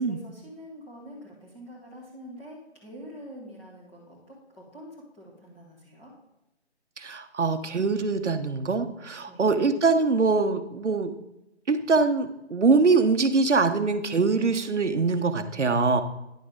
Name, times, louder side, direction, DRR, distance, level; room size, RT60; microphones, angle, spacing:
voice 1, 0.0-6.1 9.3-9.5, equal, 5° left, -7 dB, 1.2 m, -45 dB
voice 2, 7.0-11.1 11.7-16.0, right 4 dB, 80° right, 9 dB, 1.0 m, -23 dB
10.0 x 6.5 x 3.7 m, 0.91 s
figure-of-eight pair, 160°, 35 cm